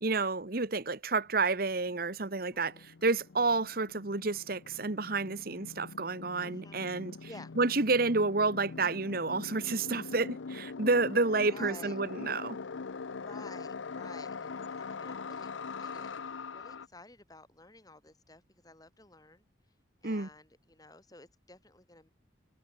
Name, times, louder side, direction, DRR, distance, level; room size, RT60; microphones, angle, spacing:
voice 1, 0.0-7.1 7.6-12.6 20.0-20.3, right 3 dB, 50° right, 1.4 m, -30 dB
sound 1, 1.9-16.9, left 4 dB, 85° left, 0.7 m, -43 dB
voice 2, 2.5-2.9 6.4-6.8 7.2-7.5 11.4-12.0 13.1-16.1 16.5-19.5 20.0-22.1, left 2 dB, 20° left, 3.5 m, -53 dB
head